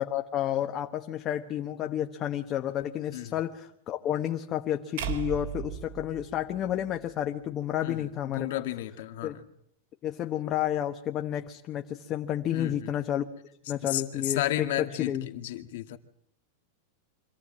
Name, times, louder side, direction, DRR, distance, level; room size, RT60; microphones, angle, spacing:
voice 1, 0.0-8.6 9.2-9.4 10.0-13.3 13.7-15.3, left 11 dB, 30° left, 5 dB, 1.2 m, -31 dB
sound 1, 5.0-7.2, right 9 dB, 70° right, 3.3 m, -37 dB
voice 2, 8.3-9.4 12.5-12.9 13.8-16.0, left 14 dB, 70° left, 7 dB, 2.1 m, -33 dB
25.5 x 15.0 x 8.8 m, 0.74 s
supercardioid pair, 145°, 0 cm